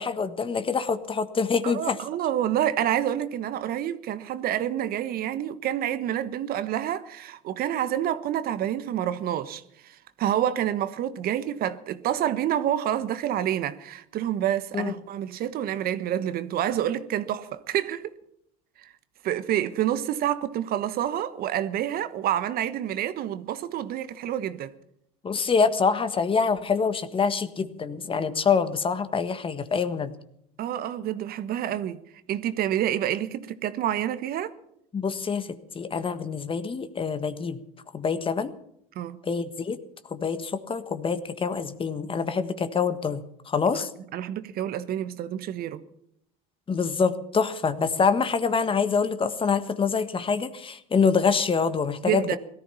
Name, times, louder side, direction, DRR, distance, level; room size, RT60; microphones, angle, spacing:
voice 1, 0.0-2.0 14.7-14.9 25.2-30.1 34.9-37.6 37.9-38.5 39.2-39.8 40.1-43.9 46.7-52.4, left 5 dB, 30° left, 1.5 m, -25 dB
voice 2, 1.6-18.1 18.8-18.9 19.2-24.7 30.6-32.0 32.3-34.5 38.9-39.2 44.1-45.8 52.0-52.4, right 11 dB, 55° right, 1.2 m, -28 dB
17.5 x 13.5 x 5.7 m
supercardioid pair, 85°, 19 cm